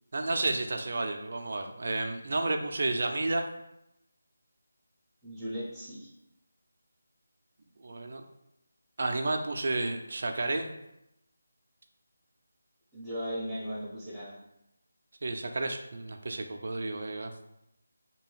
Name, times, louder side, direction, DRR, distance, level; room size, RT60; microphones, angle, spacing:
voice 1, 0.1-3.4 7.8-8.2 9.0-10.8 15.2-17.3, right 2 dB, 55° right, 4 dB, 0.3 m, -31 dB
voice 2, 5.2-6.1 12.9-14.4, equal, ahead, -10 dB, 0.7 m, -37 dB
2.7 x 2.3 x 3.2 m, 0.85 s
figure-of-eight pair, 165°, 0 cm